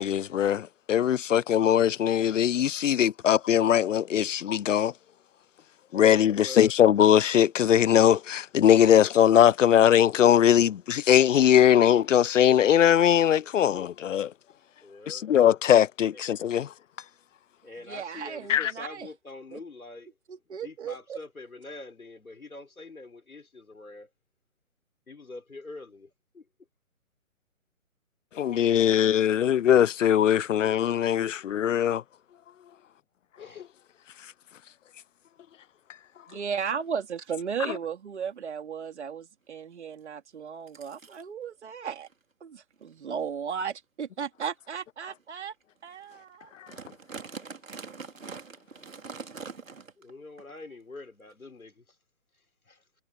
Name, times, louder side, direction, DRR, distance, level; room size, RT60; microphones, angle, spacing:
voice 1, 0.0-4.9 5.9-14.3 15.1-16.7 18.5-18.7 28.4-32.0 33.6-33.7, left 10 dB, 65° left, 0.5 m, -21 dB
voice 2, 6.3-6.7 14.8-15.3 16.1-16.2 17.6-20.1 20.6-24.1 25.1-26.5 33.4-33.7 50.0-52.0 52.7-52.8, left 3 dB, 85° left, 4.4 m, -45 dB
voice 3, 17.9-19.1 19.5-19.6 20.3-21.2 36.3-42.1 42.4-45.5 45.8-46.5, right 7 dB, 55° right, 3.4 m, -35 dB
sound 1, 36.8-36.9 37.3-37.6 38.1-38.2 38.6-38.9 40.0-40.1 40.7-41.2 42.0-42.1 42.7-42.9 43.5-43.6 44.3-44.5 45.1-45.2 45.6-45.7 45.9-46.1 46.4-50.1 50.4-50.5 51.3-51.4, right 5 dB, 70° right, 3.8 m, -43 dB
figure-of-eight pair, 140°, 41 cm